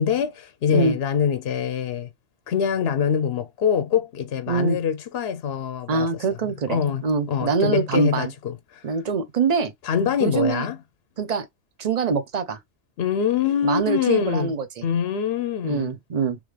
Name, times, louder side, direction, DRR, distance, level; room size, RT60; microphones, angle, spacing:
voice 1, 0.0-2.1 2.5-8.9 9.8-10.8 13.0-14.5 14.8-15.9, left 8 dB, 65° left, 0.8 m, -24 dB
voice 2, 4.5-4.8 5.9-8.3 8.8-9.7 10.2-10.7 11.2-11.5 11.8-12.6 13.6-14.7 15.6-16.4, right 5 dB, 40° right, 0.7 m, -24 dB
3.7 x 3.2 x 3.2 m
omnidirectional pair, 1.2 m